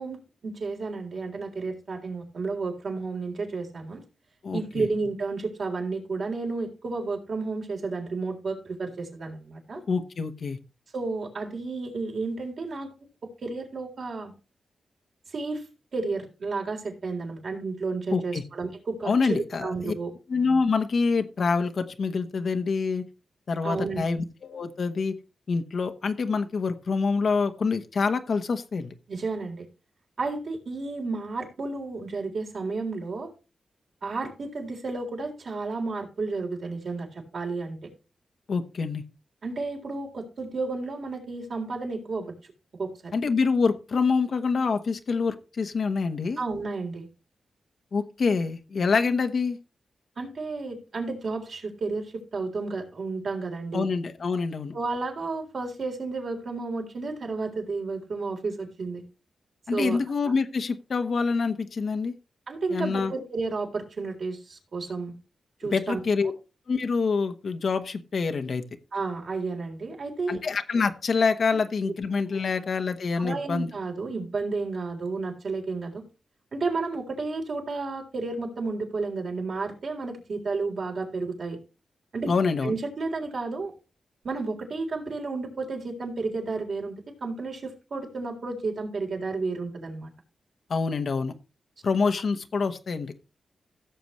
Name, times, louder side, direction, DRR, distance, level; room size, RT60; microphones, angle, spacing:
voice 1, 0.0-4.0 4.5-9.8 10.9-12.9 13.2-14.3 15.3-15.6 15.9-20.1 23.6-24.0 29.1-29.7 30.2-33.3 34.0-37.8 39.4-42.3 42.8-43.1 46.4-47.1 50.2-53.9 54.7-59.0 59.7-60.0 62.5-65.1 65.6-66.0 68.9-70.4 73.1-76.0 76.5-81.6 82.1-82.3 82.6-83.7 84.2-90.1, right 3 dB, 65° right, 1 dB, 3.7 m, -32 dB
voice 2, 4.4-4.9 9.9-10.6 18.1-18.4 19.0-19.9 20.3-23.0 23.5-25.1 25.5-28.9 38.5-39.0 43.1-46.4 47.9-49.6 53.7-54.7 59.7-62.1 62.7-63.1 65.6-66.3 66.7-68.6 70.3-73.7 82.3-82.7 90.7-91.3 91.8-93.1, left 4 dB, 65° left, 7 dB, 1.2 m, -26 dB
16.0 x 6.9 x 3.2 m, 0.32 s
cardioid pair, 70°, 0 cm